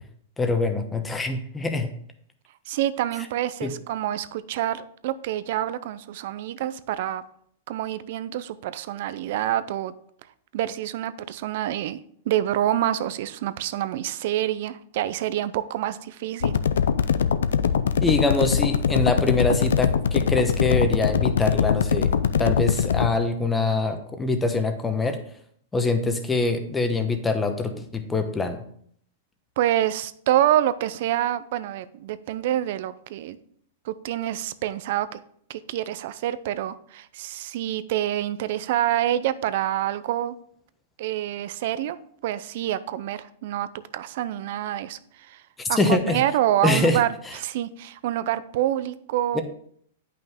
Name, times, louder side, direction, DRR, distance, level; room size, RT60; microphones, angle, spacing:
voice 1, 0.4-1.9 3.6-3.7 18.0-25.2 25.7-28.6 45.6-46.2 46.6-47.3 49.3-49.4, left 3 dB, 10° left, 7 dB, 1.0 m, -24 dB
voice 2, 2.7-7.2 7.7-9.9 10.5-12.0 12.3-16.6 29.6-33.4 33.9-35.2 35.5-40.4 41.0-42.0 42.2-43.7 43.9-45.4 45.7-47.1 47.4-49.4, right 12 dB, 60° right, 14 dB, 0.5 m, -27 dB
sound 1, 16.4-23.1, left 7 dB, 85° left, 0.4 m, -22 dB
9.0 x 5.6 x 3.6 m, 0.65 s
hypercardioid pair, 130°, 0 cm